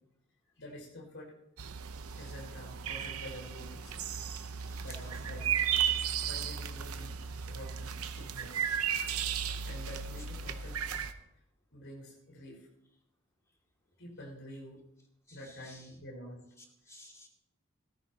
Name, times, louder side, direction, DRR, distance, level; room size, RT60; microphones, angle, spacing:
voice 1, 0.6-1.3 1.6-1.8 2.2-4.0 4.8-5.5 6.3-8.7 9.2-10.8 11.1-11.4 11.7-12.7 14.0-14.8 15.3-16.4, equal, 60° left, -1 dB, 5.7 m, -48 dB
sound 1, 1.6-11.1, right 8 dB, 75° right, 0.8 m, -35 dB
voice 2, 4.6-5.3 5.9-6.4 10.2-10.3 15.3-16.0 16.6-17.3, left 2 dB, 15° left, 0 dB, 2.4 m, -57 dB
18.0 x 14.0 x 2.9 m, 0.83 s
head